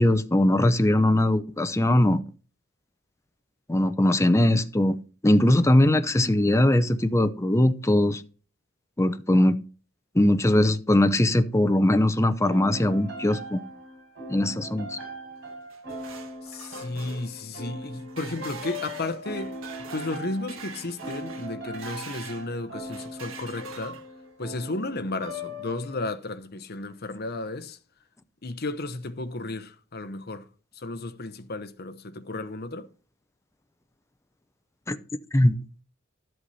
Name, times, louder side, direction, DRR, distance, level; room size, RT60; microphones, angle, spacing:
voice 1, 0.0-2.2 3.7-5.0 5.2-8.2 9.0-9.6 10.1-13.6 14.3-15.0 34.9-35.0 35.3-35.5, left 1 dB, 15° left, 0.7 m, -21 dB
sound 1, 12.4-26.1, equal, 55° right, 5.4 m, -40 dB
sound 2, 15.5-22.5 22.9-24.3, right 5 dB, 75° right, 1.7 m, -44 dB
voice 2, 16.4-19.6 19.9-24.0 24.4-27.8 28.4-30.5 30.7-32.9, left 2 dB, 50° left, 0.9 m, -33 dB
11.5 x 7.9 x 4.2 m
head